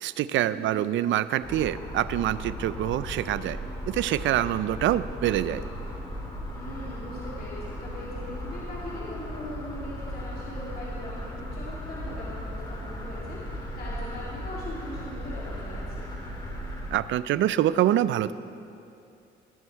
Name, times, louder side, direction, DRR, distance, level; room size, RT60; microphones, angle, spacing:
voice 1, 0.0-3.6 3.9-5.6 16.9-18.3, right 12 dB, 75° right, 15 dB, 0.4 m, -25 dB
sound 1, 1.4-16.9, equal, 25° left, 3.3 m, -37 dB
voice 2, 6.5-16.1, left 1 dB, 50° left, -7 dB, 2.8 m, -40 dB
19.0 x 7.0 x 4.5 m, 2.6 s
cardioid pair, 90°, 20 cm